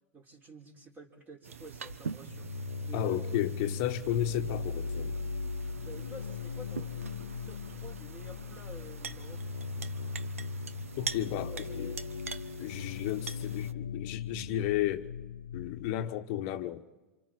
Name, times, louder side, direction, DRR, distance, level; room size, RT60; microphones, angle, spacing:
voice 1, 0.1-2.5 2.8-3.4 5.8-7.0 7.5-9.4 11.5-12.0, right 1 dB, 25° right, 3.8 m, -49 dB
sound 1, 1.4-13.7, right 6 dB, 85° right, 1.0 m, -44 dB
sound 2, 2.3-15.9, left 4 dB, 85° left, 0.6 m, -38 dB
voice 2, 2.9-5.2 11.0-11.9 12.6-15.1 15.5-16.9, left 12 dB, 50° left, 1.1 m, -33 dB
28.0 x 27.0 x 4.4 m
hypercardioid pair, 100°, 7 cm